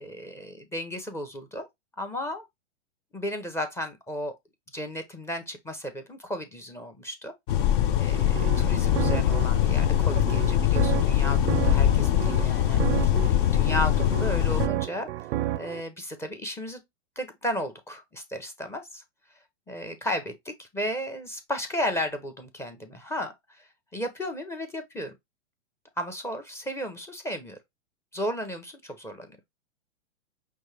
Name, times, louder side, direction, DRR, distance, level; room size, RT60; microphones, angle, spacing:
voice 1, 0.0-1.7 2.0-2.4 3.1-4.3 4.7-7.3 8.0-15.1 15.6-16.8 17.2-19.0 19.7-25.1 26.0-27.6 28.1-29.4, equal, 5° left, 0.6 m, -34 dB
sound 1, 7.5-14.7, left 10 dB, 45° left, 0.5 m, -23 dB
sound 2, 8.1-15.8, right 14 dB, 65° right, 0.5 m, -32 dB
5.4 x 2.3 x 3.2 m
hypercardioid pair, 125°, 36 cm